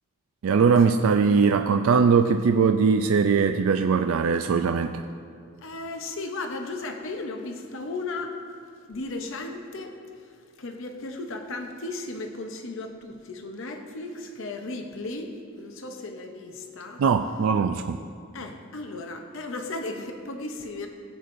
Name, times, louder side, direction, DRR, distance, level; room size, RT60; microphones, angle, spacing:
voice 1, 0.4-5.0 17.0-18.0, right 5 dB, 65° right, 6 dB, 0.3 m, -21 dB
voice 2, 5.6-8.4 8.9-17.0 18.3-20.9, left 2 dB, 60° left, 4 dB, 0.7 m, -35 dB
17.0 x 8.3 x 2.6 m, 2.5 s
head